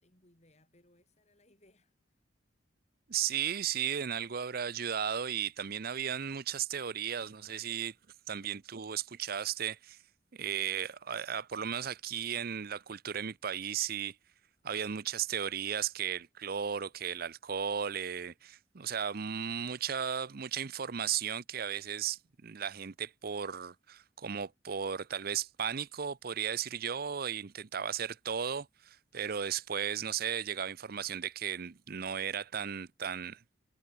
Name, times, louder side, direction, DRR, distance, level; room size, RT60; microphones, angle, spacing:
voice 1, 0.0-2.2, left 1 dB, 35° left, 5.9 m, -67 dB
voice 2, 3.1-7.9 8.3-10.0 10.3-14.2 14.6-33.4, right 8 dB, 50° right, 0.6 m, -35 dB
head